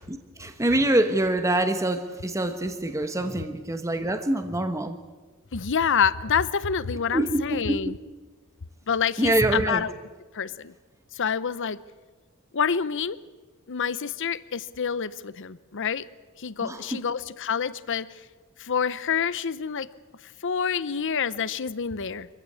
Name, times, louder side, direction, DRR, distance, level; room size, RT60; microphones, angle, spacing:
voice 1, 0.1-5.0 7.1-7.9 9.2-9.8 16.6-17.0, right 1 dB, 15° right, 8 dB, 1.1 m, -25 dB
voice 2, 5.5-8.0 8.9-9.9 10.3-10.7 11.2-11.8 12.5-13.2 13.7-16.0 16.4-18.1 18.6-19.9 20.4-22.3, left 6 dB, 60° left, 17 dB, 0.8 m, -27 dB
24.5 x 15.5 x 8.5 m, 1.4 s
head